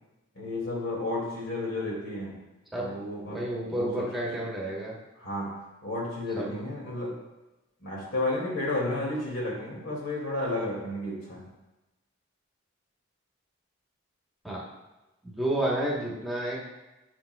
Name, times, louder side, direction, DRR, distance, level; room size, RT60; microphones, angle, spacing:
voice 1, 0.3-2.4 2.7-3.4 3.7-4.1 5.2-7.2 7.8-11.4, left 2 dB, 85° left, -3 dB, 2.1 m, -32 dB
voice 2, 2.7-5.0 6.4-6.5 14.4-14.7 15.2-16.6, right 1 dB, ahead, -5 dB, 1.0 m, -31 dB
8.6 x 5.4 x 2.2 m, 1.0 s
head